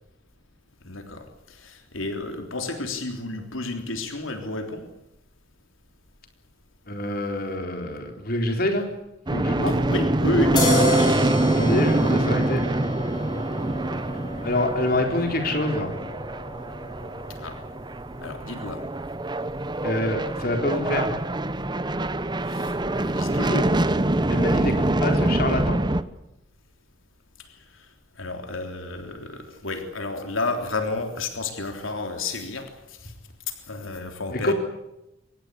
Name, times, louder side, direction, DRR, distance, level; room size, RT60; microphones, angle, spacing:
voice 1, 0.8-4.9 9.7-11.2 17.4-17.6 18.2-18.9 22.5-23.7 27.5-27.9 28.2-33.1 33.5-34.5, left 2 dB, 80° left, 5 dB, 3.5 m, -31 dB
voice 2, 6.9-8.9 9.3-9.8 11.6-12.6 14.4-15.9 19.8-21.1 24.3-25.8 34.3-34.5, left 1 dB, 50° left, 4 dB, 4.0 m, -26 dB
sound 1, 9.3-26.0, right 1 dB, 20° right, 0.9 m, -25 dB
sound 2, 10.6-17.9, left 1 dB, 20° left, 7.1 m, -31 dB
24.5 x 19.5 x 8.3 m, 0.89 s
head